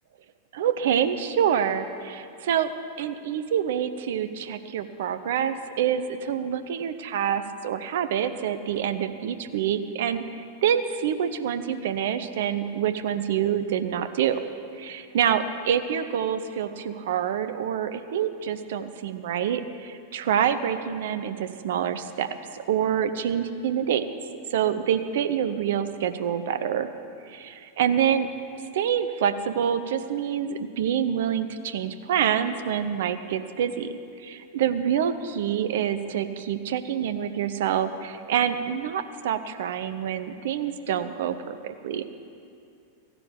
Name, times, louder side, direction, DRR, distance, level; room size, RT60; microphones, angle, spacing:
voice 1, 0.5-2.7 3.0-10.2 10.6-14.4 14.8-22.3 22.5-24.0 24.5-26.9 27.3-28.3 28.7-33.9 34.2-42.1, right 9 dB, 55° right, 11 dB, 0.7 m, -26 dB
15.0 x 7.0 x 8.5 m, 2.5 s
figure-of-eight pair, 90°, 0 cm